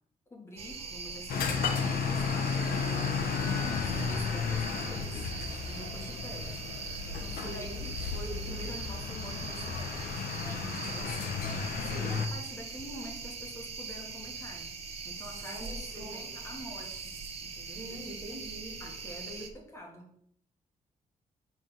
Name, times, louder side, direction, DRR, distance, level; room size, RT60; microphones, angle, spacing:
voice 1, 0.3-3.2 3.7-5.3 5.6-6.6 7.0-11.4 12.0-14.7 15.0-18.2 18.8-20.2, left 1 dB, 20° left, 0 dB, 1.6 m, -46 dB
sound 1, 0.6-19.5, right 4 dB, 45° right, 1.0 m, -41 dB
sound 2, 1.3-12.3, left 5 dB, 80° left, 1.0 m, -33 dB
voice 2, 7.3-7.9 11.8-12.2 15.4-16.3 17.7-18.9, right 1 dB, 25° right, 0 dB, 1.3 m, -44 dB
7.5 x 3.6 x 6.0 m, 0.69 s
wide cardioid pair, 160°, 15 cm